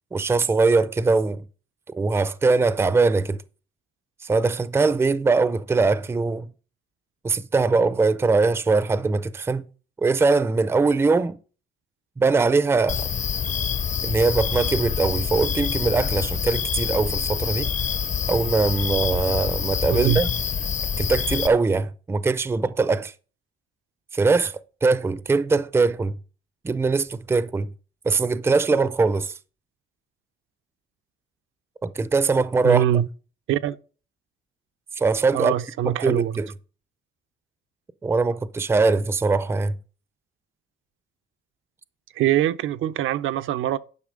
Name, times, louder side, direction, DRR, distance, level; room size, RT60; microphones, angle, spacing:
voice 1, 0.1-1.4 1.9-3.4 4.2-6.5 7.2-9.6 10.0-11.4 12.2-13.1 14.0-17.7 18.3-20.3 21.0-23.1 24.1-26.1 26.6-27.7 28.0-29.3 31.8-32.8 35.0-35.5 35.8-36.5 38.0-39.8, right 4 dB, 10° right, 0.4 m, -21 dB
sound 1, 12.9-21.5, left 7 dB, 35° left, 0.6 m, -26 dB
voice 2, 19.9-20.2 32.6-33.1 33.5-33.8 35.3-36.4 42.1-43.8, right 12 dB, 75° right, 0.6 m, -23 dB
10.5 x 5.8 x 5.1 m
cardioid pair, 145°, 21 cm